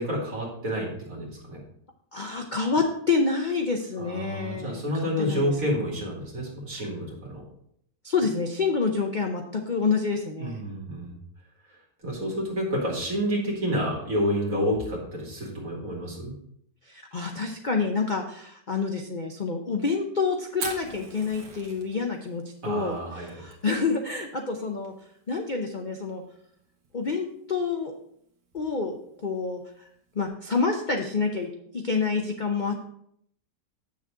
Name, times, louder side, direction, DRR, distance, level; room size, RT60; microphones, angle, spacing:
voice 1, 0.0-1.6 4.0-7.4 10.4-11.1 12.0-16.3 22.6-23.4, equal, 50° right, -3 dB, 3.0 m, -29 dB
voice 2, 2.1-5.7 8.0-10.6 16.8-24.9 25.3-26.2 26.9-27.9 28.5-29.0 29.2-29.6 30.1-32.8, left 4 dB, 65° left, 3 dB, 0.4 m, -28 dB
Fire, 20.5-30.3, right 4 dB, 75° right, 2.0 m, -45 dB
7.9 x 6.9 x 3.8 m, 0.70 s
omnidirectional pair, 1.9 m